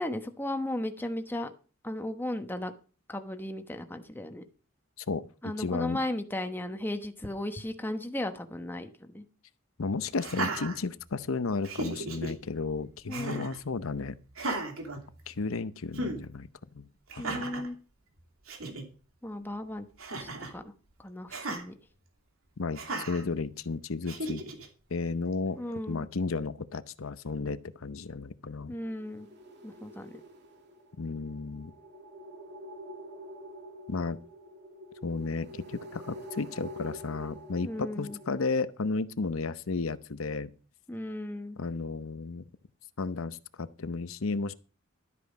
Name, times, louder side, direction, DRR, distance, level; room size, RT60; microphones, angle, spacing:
voice 1, 0.0-1.5 1.8-2.7 3.1-4.4 5.4-9.2 13.1-13.5 17.2-17.8 19.2-19.9 20.2-20.7 21.0-21.7 25.6-26.1 28.7-29.3 29.6-30.2 37.6-38.2 40.9-41.6, left 1 dB, 10° left, 1.1 m, -35 dB
voice 2, 5.1-6.0 9.8-14.1 15.3-16.5 16.7-16.9 17.3-17.4 22.6-24.4 24.9-25.6 25.9-28.7 31.0-31.7 33.9-34.2 35.0-40.5 41.6-42.4 43.0-44.5, left 4 dB, 75° left, 0.7 m, -33 dB
Laughter, 10.2-11.3 11.6-12.3 13.1-13.6 14.3-15.5 15.9-16.2 17.1-17.7 18.2-18.3 18.5-18.8 20.0-20.6 21.3-21.6 22.7-23.2 24.1-24.7, right 2 dB, 85° right, 2.7 m, -35 dB
sound 1, 28.7-38.6, equal, 55° right, 2.4 m, -47 dB
12.5 x 8.3 x 5.2 m
head